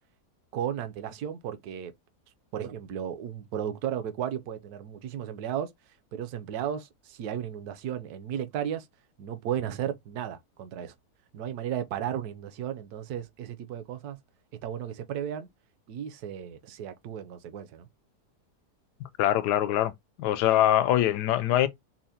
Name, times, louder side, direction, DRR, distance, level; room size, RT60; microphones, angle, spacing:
voice 1, 0.5-1.9 2.5-5.7 6.1-8.9 9.2-10.9 11.3-14.2 14.6-15.5 15.9-17.9, right 9 dB, 75° right, 1.2 m, -34 dB
voice 2, 19.2-19.9 20.2-21.7, left 12 dB, 85° left, 1.2 m, -23 dB
5.7 x 2.1 x 2.7 m
omnidirectional pair, 1.7 m